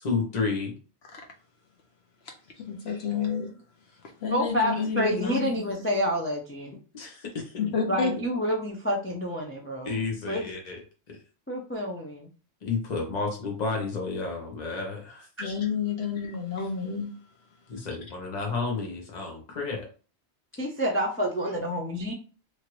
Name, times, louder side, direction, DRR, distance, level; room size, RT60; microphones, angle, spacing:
voice 1, 0.0-0.7 6.9-7.5 9.8-10.8 11.1-11.2 12.6-15.3 17.7-19.9, left 4 dB, 40° left, 0 dB, 0.9 m, -31 dB
voice 2, 2.6-3.5 4.0-5.8 7.6-8.1 15.4-17.1, left 6 dB, 70° left, 2 dB, 0.9 m, -30 dB
voice 3, 4.3-6.8 7.9-10.0 10.3-10.5 11.5-12.3 20.6-22.1, equal, 20° left, 0 dB, 0.3 m, -28 dB
3.1 x 2.5 x 3.0 m, 0.36 s
omnidirectional pair, 1.2 m